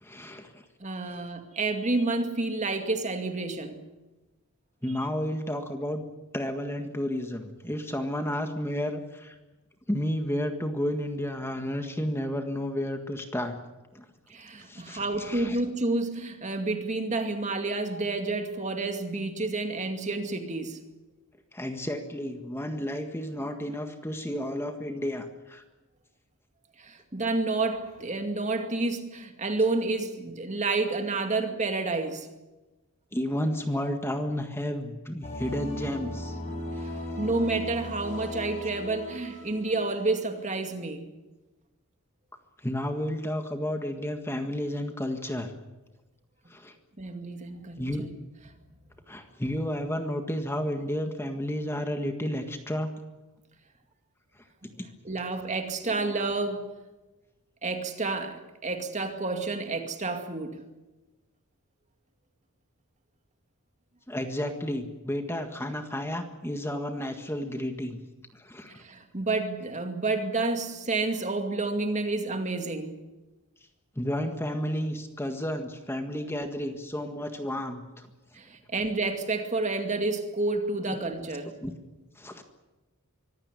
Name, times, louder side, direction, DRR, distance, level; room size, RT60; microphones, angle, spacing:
voice 1, 0.0-0.6 1.1-1.2 4.8-6.0 6.3-9.4 9.9-13.6 13.9-14.1 14.6-15.6 21.5-25.6 33.1-36.4 36.8-36.9 42.6-45.5 46.5-46.7 47.8-48.1 49.1-52.9 54.8-54.9 64.1-68.0 68.3-68.8 73.9-78.1 80.9-81.0 81.6-81.7 82.1-82.4, equal, 10° left, 1.7 m, -32 dB
voice 2, 0.8-3.8 14.3-20.8 26.8-32.3 37.2-41.1 47.0-48.1 54.6-54.7 55.0-56.7 57.6-60.6 68.7-73.0 78.3-81.6, right 3 dB, 30° right, 2.3 m, -30 dB
sound 1, 35.2-40.6, left 1 dB, 30° left, 6.1 m, -37 dB
24.5 x 16.0 x 9.9 m
head